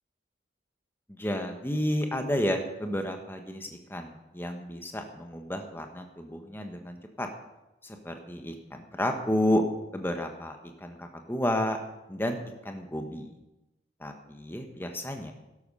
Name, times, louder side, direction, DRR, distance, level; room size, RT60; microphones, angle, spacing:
voice 1, 1.1-7.3 7.8-9.6 9.9-11.8 12.1-12.4 12.6-13.3 14.0-15.3, left 1 dB, 15° left, 4 dB, 1.3 m, -31 dB
13.0 x 11.5 x 5.7 m, 0.97 s
head